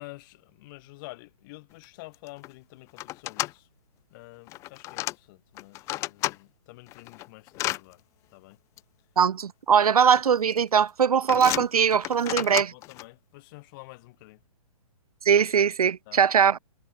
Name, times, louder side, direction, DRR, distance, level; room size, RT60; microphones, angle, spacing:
voice 1, 0.0-3.7 4.1-8.0 8.3-8.6 12.2-14.4 16.1-16.2, left 23 dB, 35° left, 7.0 m, -48 dB
sound 1, 1.8-1.9 2.1-2.5 3.0-3.5 4.5-5.1 5.6-6.4 6.9-7.8 8.8-8.9 9.8-10.2 10.5-10.8 11.3-13.0, left 18 dB, 15° left, 0.5 m, -32 dB
voice 2, 9.2-12.7 15.2-16.6, right 7 dB, 80° right, 1.4 m, -21 dB
hypercardioid pair, 150°, 19 cm